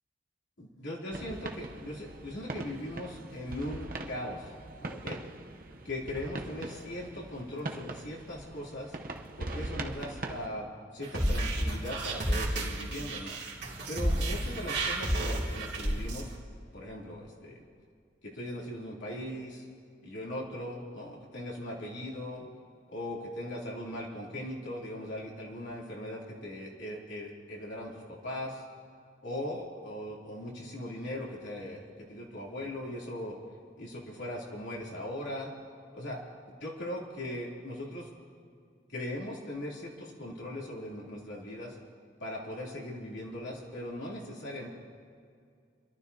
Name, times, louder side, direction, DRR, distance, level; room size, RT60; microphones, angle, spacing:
voice 1, 0.6-4.5 4.8-5.2 5.8-8.9 9.4-10.7 10.9-13.4 13.9-16.3 16.7-17.6 18.2-19.6 20.0-22.4 22.9-28.6 29.2-33.4 33.8-35.5 35.9-36.2 36.6-38.1 38.9-41.7 42.2-44.7, left 1 dB, 85° left, -4 dB, 2.9 m, -39 dB
sound 1, 1.1-10.5, right 2 dB, 50° right, 0.8 m, -41 dB
sound 2, 11.0-16.2, right 1 dB, 75° right, 2.6 m, -31 dB
30.0 x 12.0 x 2.8 m, 2.3 s
head